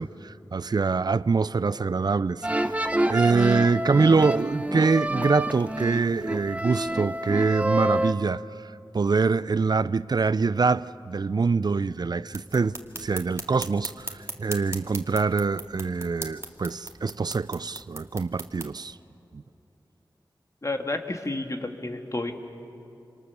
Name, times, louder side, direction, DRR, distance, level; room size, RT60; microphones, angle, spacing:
voice 1, 0.0-2.5 3.1-8.4 8.9-14.1 14.4-18.9 19.3-19.4, right 4 dB, 55° right, 0.5 m, -24 dB
sound 1, 2.4-8.1, right 1 dB, 15° right, 1.0 m, -27 dB
sound 2, 12.3-18.7, right 2 dB, 30° right, 2.1 m, -39 dB
voice 2, 20.6-22.3, left 2 dB, 40° left, 2.0 m, -30 dB
27.0 x 27.0 x 6.9 m
wide cardioid pair, 80°, 8 cm